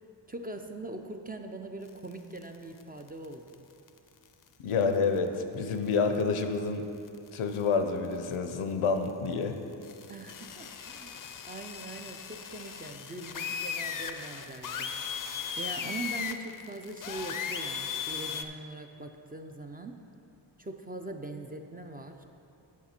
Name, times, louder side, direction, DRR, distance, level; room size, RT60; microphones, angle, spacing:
voice 1, 0.3-3.7 10.1-20.0 20.6-22.2, right 2 dB, 20° right, 4 dB, 0.4 m, -42 dB
sound 1, 2.1-2.8 3.1-3.2 3.5-3.6 3.9-4.0 4.8-5.2 5.7-5.8 6.1-6.4 7.1-7.3 7.5-7.6 8.0-8.4 9.7-18.4, left 7 dB, 45° left, 0.5 m, -37 dB
voice 2, 4.6-6.8 7.3-9.6, left 5 dB, 85° left, 7 dB, 0.7 m, -28 dB
8.3 x 7.1 x 4.3 m, 2.7 s
cardioid pair, 80°, 49 cm